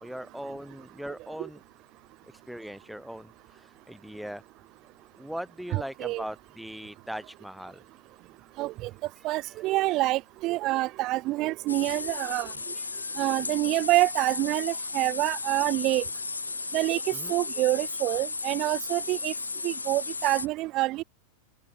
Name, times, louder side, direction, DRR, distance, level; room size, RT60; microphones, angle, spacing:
voice 1, 0.0-1.6 2.5-4.4 5.2-7.8 9.3-9.6 12.7-13.2 17.1-17.3, equal, ahead, 1.1 m, -40 dB
voice 2, 5.7-6.2 8.6-8.9 9.2-12.5 13.2-16.0 16.7-17.0 17.3-19.3 19.6-21.0, right 18 dB, 40° right, 0.8 m, -27 dB
sound 1, 11.7-20.5, left 4 dB, 80° left, 3.0 m, -35 dB
open air
figure-of-eight pair, 90°, 0 cm